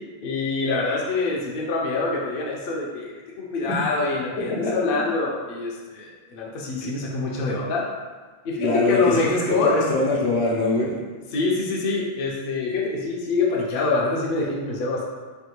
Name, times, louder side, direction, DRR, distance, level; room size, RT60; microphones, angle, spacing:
voice 1, 0.2-7.9 8.4-9.8 11.3-15.1, left 3 dB, 65° left, -3 dB, 0.7 m, -25 dB
voice 2, 8.6-11.0, left 2 dB, 85° left, -4 dB, 1.0 m, -23 dB
3.3 x 2.2 x 2.9 m, 1.4 s
omnidirectional pair, 1.1 m